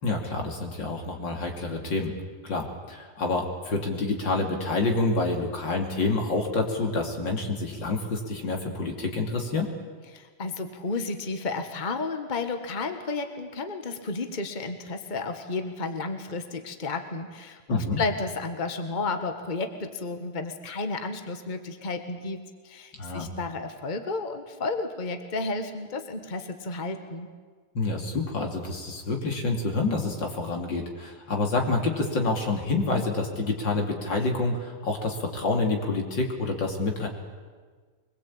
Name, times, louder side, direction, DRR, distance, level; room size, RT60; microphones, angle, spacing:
voice 1, 0.0-2.1 2.4-9.7 17.7-18.0 23.0-23.3 27.8-37.1, left 3 dB, 75° left, 2 dB, 3.5 m, -28 dB
voice 2, 10.1-27.3, left 3 dB, 25° left, 7 dB, 1.5 m, -32 dB
24.0 x 21.5 x 8.7 m, 1.5 s
omnidirectional pair, 2.0 m